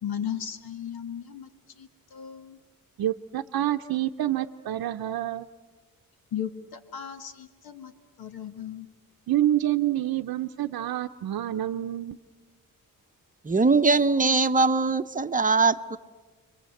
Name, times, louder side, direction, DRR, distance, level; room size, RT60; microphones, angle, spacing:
voice 1, 0.0-1.5 1.8-2.6 6.3-7.9 8.2-8.9, left 9 dB, 90° left, 8 dB, 1.6 m, -36 dB
voice 2, 3.0-5.5 9.3-12.2, right 13 dB, 80° right, 4 dB, 0.7 m, -27 dB
voice 3, 13.4-16.0, right 4 dB, 20° right, 11 dB, 0.8 m, -21 dB
30.0 x 22.5 x 7.9 m, 1.4 s
wide cardioid pair, 115°, 36 cm